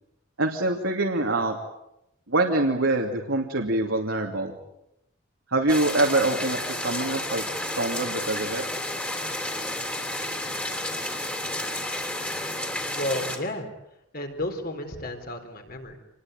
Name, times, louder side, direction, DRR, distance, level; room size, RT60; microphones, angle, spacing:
voice 1, 0.4-1.6 2.3-4.6 5.5-8.6, right 2 dB, 70° right, 0 dB, 2.8 m, -25 dB
sound 1, 5.7-13.4, left 1 dB, 5° left, 3.2 m, -31 dB
voice 2, 12.9-13.7 14.1-16.0, left 1 dB, 45° left, 5 dB, 4.0 m, -32 dB
27.5 x 21.0 x 9.2 m, 0.84 s
head